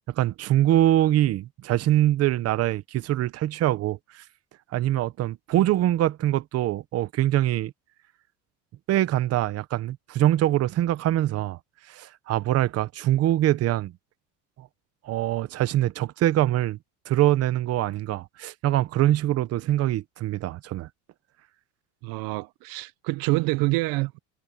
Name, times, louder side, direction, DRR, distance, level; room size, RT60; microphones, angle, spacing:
voice 1, 0.1-4.2 4.7-7.7 8.9-11.6 11.9-13.9 14.6-14.7 15.0-16.8 17.1-20.9, right 13 dB, 45° right, 1.0 m, -24 dB
voice 2, 22.0-24.2, right 23 dB, 75° right, 0.7 m, -26 dB
cardioid pair, 145°, 34 cm